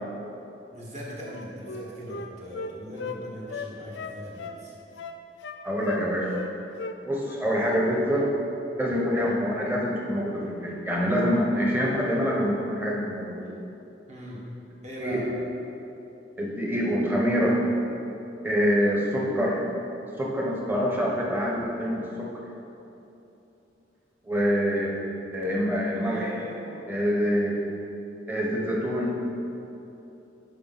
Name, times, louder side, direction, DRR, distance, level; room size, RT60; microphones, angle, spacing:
voice 1, 0.7-4.7 14.1-14.4 14.8-15.2 25.9-26.9, equal, 40° right, -4 dB, 1.5 m, -40 dB
Wind instrument woodwind instrument, 1.2-3.2 3.5-4.6 5.0-5.6 5.8-6.5 6.8-7.0 7.2-7.9 8.1-8.4, left 3 dB, 75° left, 0.5 m, -36 dB
voice 2, 5.6-6.4 7.0-8.3 8.8-13.5 15.0-15.2 16.4-17.6 18.4-19.6 20.2-22.0 24.2-24.9 25.3-26.3 26.9-27.6 28.3-29.2, equal, 10° right, -3 dB, 1.1 m, -25 dB
9.9 x 5.0 x 4.2 m, 2.9 s
head